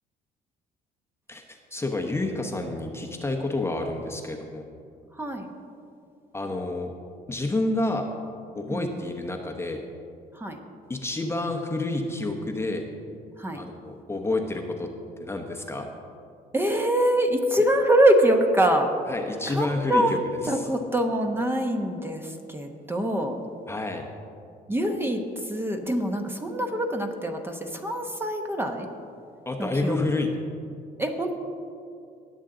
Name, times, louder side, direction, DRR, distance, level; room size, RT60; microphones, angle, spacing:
voice 1, 1.3-4.7 6.3-6.9 7.3-8.0 8.5-9.8 10.9-12.8 13.6-14.9 15.2-15.9 19.1-20.2 20.4-20.7 23.7-24.0 29.5-30.3, left 2 dB, 15° left, 3 dB, 0.9 m, -29 dB
voice 2, 5.2-5.5 8.7-9.1 10.3-10.6 13.4-13.6 16.5-18.9 19.5-20.1 20.5-23.4 24.7-28.9 29.6-30.2 31.0-31.3, right 1 dB, 15° right, 4 dB, 1.0 m, -24 dB
19.5 x 7.4 x 3.9 m, 2.4 s
cardioid pair, 110°, 17 cm